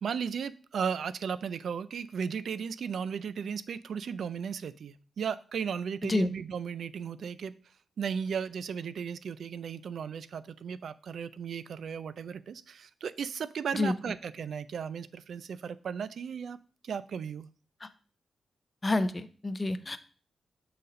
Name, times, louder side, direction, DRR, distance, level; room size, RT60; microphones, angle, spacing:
voice 1, 0.0-7.5 8.0-16.6 16.8-17.5, right 7 dB, 70° right, 15 dB, 0.4 m, -35 dB
voice 2, 18.8-20.0, left 2 dB, 20° left, 11 dB, 0.5 m, -29 dB
6.6 x 4.1 x 5.1 m, 0.40 s
wide cardioid pair, 135°, 0 cm